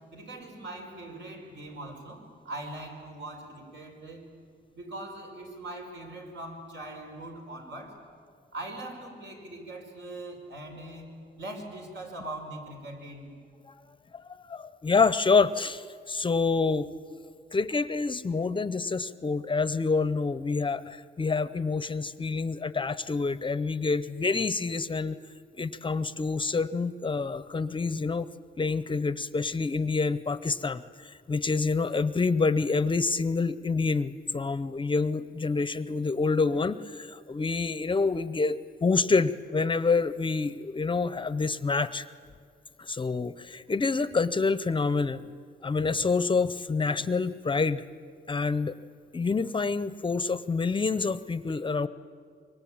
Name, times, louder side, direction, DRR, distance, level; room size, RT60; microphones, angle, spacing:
voice 1, 0.1-4.3 4.7-8.0 8.5-13.3, right 1 dB, 70° right, 2 dB, 5.4 m, -41 dB
voice 2, 14.1-16.9 17.5-25.2 25.6-28.3 28.6-42.1 42.8-45.2 45.6-47.8 48.3-48.8 49.1-51.9, left 4 dB, 25° left, 15 dB, 0.6 m, -27 dB
26.5 x 23.5 x 8.7 m, 2.3 s
cardioid pair, 125°, 19 cm